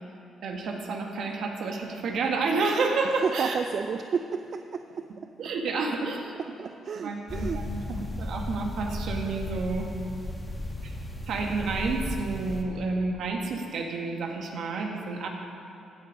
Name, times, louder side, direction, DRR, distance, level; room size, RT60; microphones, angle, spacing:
voice 1, 0.4-3.5 5.4-6.3 7.0-9.9 10.8-10.9 11.3-15.3, right 3 dB, 70° right, 2 dB, 1.4 m, -30 dB
voice 2, 3.2-5.1 6.6-7.6, right 6 dB, 55° right, 8 dB, 0.4 m, -31 dB
sound 1, 7.3-12.6, left 1 dB, 15° left, 1.4 m, -35 dB
15.5 x 6.0 x 5.2 m, 2.7 s
cardioid pair, 90°, 0 cm